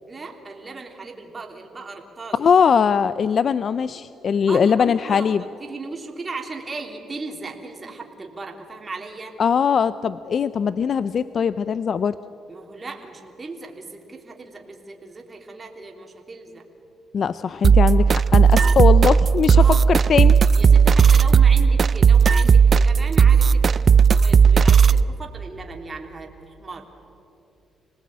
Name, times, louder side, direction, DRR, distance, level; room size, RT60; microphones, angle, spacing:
voice 1, 0.0-2.7 4.5-9.3 12.5-16.6 18.6-18.8 19.5-19.8 20.5-26.9, right 3 dB, 30° right, 2 dB, 3.1 m, -37 dB
voice 2, 2.3-5.4 9.4-12.1 17.1-20.4, left 7 dB, 50° left, 15 dB, 0.5 m, -20 dB
sound 1, 17.6-25.0, right 6 dB, 45° right, 0.5 m, -15 dB
26.5 x 19.0 x 8.8 m, 2.8 s
cardioid pair, 90°, 0 cm